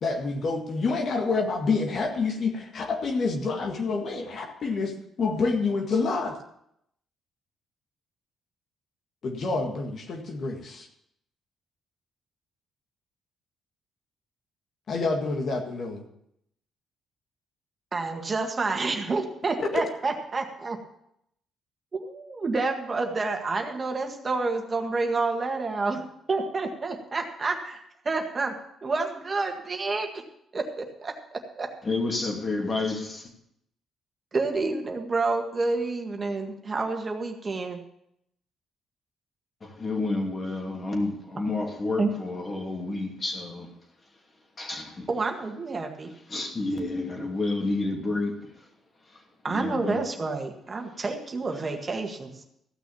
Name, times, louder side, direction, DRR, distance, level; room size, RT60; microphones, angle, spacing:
voice 1, 0.0-4.9 5.2-6.4 9.2-10.9 14.9-16.0 19.7-19.8, left 4 dB, 55° left, 1.8 m, -27 dB
voice 2, 17.9-20.8 21.9-26.0 26.3-28.5 28.8-30.1 30.5-31.7 34.3-37.8 41.4-41.7 42.0-42.1 45.1-46.1 49.4-52.4, right 3 dB, 35° right, 1.8 m, -29 dB
voice 3, 31.9-33.2 39.8-43.7 44.6-45.1 46.3-48.3 49.5-50.0, left 2 dB, 35° left, 2.8 m, -29 dB
15.0 x 6.2 x 7.0 m
cardioid pair, 90°, 0 cm